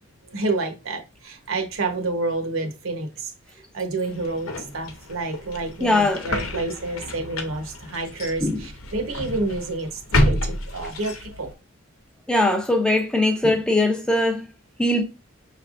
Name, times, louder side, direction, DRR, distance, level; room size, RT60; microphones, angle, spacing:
voice 1, 0.3-3.3 3.7-11.5, right 2 dB, 75° right, 1.0 m, -29 dB
sound 1, 4.0-11.5, left 1 dB, 90° left, 0.9 m, -29 dB
voice 2, 5.8-6.3 8.4-8.6 12.3-14.5 14.8-15.0, left 1 dB, 5° left, 0.5 m, -20 dB
5.8 x 3.3 x 2.5 m
head